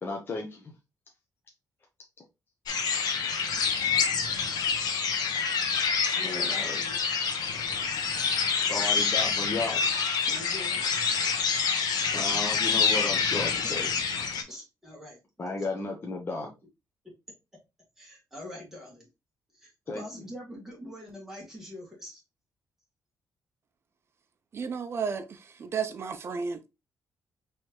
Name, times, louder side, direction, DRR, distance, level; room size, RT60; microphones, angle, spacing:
voice 1, 0.0-0.7 6.2-6.8 8.7-10.0 12.1-13.9 15.4-16.5 19.9-20.0, left 3 dB, 30° left, 0.8 m, -34 dB
sound 1, 2.7-14.4, left 5 dB, 70° left, 0.9 m, -27 dB
voice 2, 6.2-7.0 10.2-10.8 11.8-11.9 13.6-13.7 14.5-15.2 15.6-15.7 18.0-19.1 19.5-22.2, left 1 dB, 5° right, 2.1 m, -44 dB
voice 3, 24.5-25.2 25.6-26.7, right 5 dB, 35° right, 0.6 m, -32 dB
4.4 x 3.3 x 3.0 m
wide cardioid pair, 160°, 7 cm